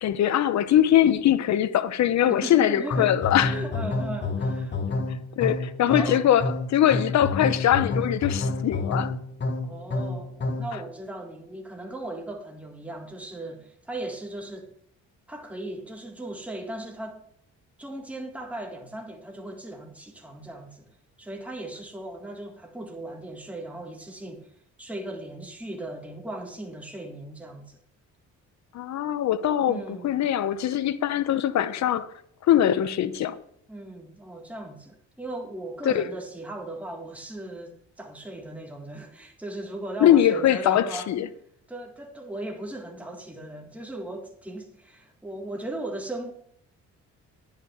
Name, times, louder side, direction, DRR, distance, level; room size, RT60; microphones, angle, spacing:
voice 1, 0.0-3.6 5.4-6.4 6.7-9.1 28.7-32.1 32.4-33.4 35.8-36.0 40.0-41.3, left 11 dB, 65° left, 0.8 m, -22 dB
voice 2, 2.3-3.2 3.5-4.8 5.9-6.3 6.9-7.0 9.6-14.7 15.3-17.2 17.8-20.8 21.2-24.5 24.8-27.8 29.7-30.1 33.7-41.1 41.7-46.3, right 1 dB, 5° right, 2.0 m, -37 dB
sound 1, 2.9-10.8, left 2 dB, 35° left, 1.5 m, -29 dB
10.5 x 5.8 x 6.5 m
cardioid pair, 90°, 30 cm